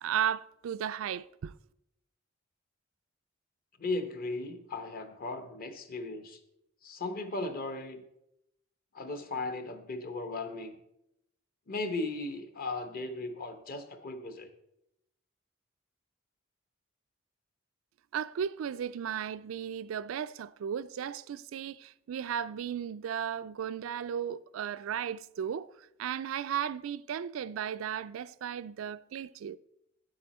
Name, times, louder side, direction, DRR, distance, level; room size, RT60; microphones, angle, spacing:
voice 1, 0.0-1.5 18.1-29.6, right 8 dB, 80° right, 0.3 m, -35 dB
voice 2, 3.8-6.4 6.8-8.0 8.9-10.7 11.7-14.5, left 2 dB, 45° left, 0.9 m, -37 dB
9.8 x 7.8 x 4.2 m
head